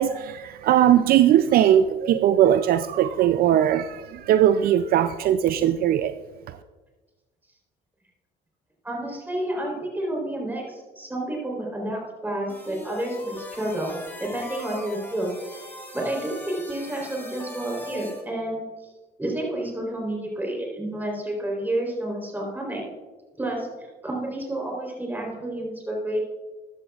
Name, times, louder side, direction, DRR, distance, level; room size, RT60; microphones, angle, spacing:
voice 1, 0.0-6.2 6.5-6.6, right 11 dB, 65° right, 12 dB, 0.4 m, -20 dB
voice 2, 8.8-15.6 15.9-18.6 19.2-22.9 23.4-23.7 24.0-26.2, right 1 dB, 10° right, -1 dB, 3.6 m, -30 dB
sound 1, 12.5-18.2, left 1 dB, 10° left, 2.0 m, -40 dB
13.5 x 11.0 x 2.4 m, 1.3 s
cardioid pair, 110°, 17 cm